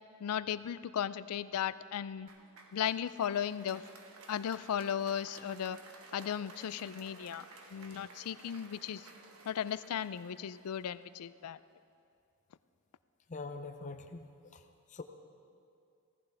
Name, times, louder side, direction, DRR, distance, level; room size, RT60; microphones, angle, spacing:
voice 1, 0.2-2.3 2.7-3.8 4.3-5.8 6.1-9.1 9.5-11.6, left 9 dB, 90° left, 16 dB, 0.4 m, -36 dB
Applause, 2.3-11.6, right 3 dB, 80° right, 1.2 m, -55 dB
voice 2, 13.3-14.6 14.9-15.0, left 3 dB, 35° left, 7 dB, 0.6 m, -44 dB
16.5 x 15.0 x 3.4 m, 2.4 s
head